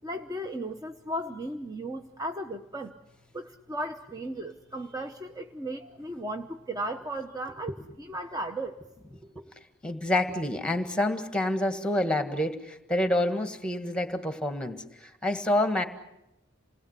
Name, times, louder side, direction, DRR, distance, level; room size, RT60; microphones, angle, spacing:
voice 1, 0.0-2.9 3.3-7.7 8.0-8.8, right 1 dB, 15° right, 5 dB, 0.9 m, -35 dB
voice 2, 9.8-15.8, left 1 dB, 5° left, 7 dB, 1.8 m, -28 dB
28.0 x 20.0 x 8.2 m, 0.92 s
head